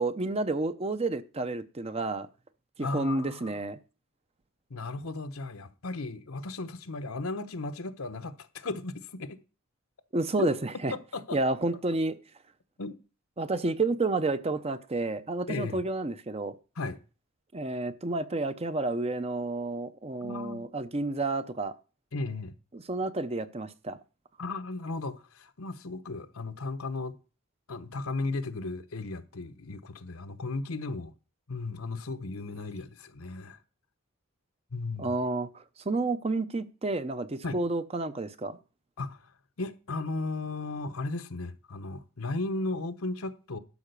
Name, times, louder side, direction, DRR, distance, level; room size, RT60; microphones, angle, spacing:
voice 1, 0.0-2.3 2.8-3.8 10.1-10.9 11.3-12.2 13.4-16.5 17.5-21.7 22.7-24.0 35.0-38.6, right 2 dB, 30° right, 0.6 m, -30 dB
voice 2, 2.8-3.6 4.7-9.4 10.4-10.5 10.9-11.4 12.8-13.0 15.5-15.8 16.8-17.0 20.2-20.7 22.1-22.5 24.4-27.2 27.7-31.1 31.5-33.6 34.7-35.2 37.4-37.6 39.0-39.3 39.6-43.6, left 3 dB, 75° left, 0.9 m, -35 dB
12.0 x 4.9 x 6.7 m
head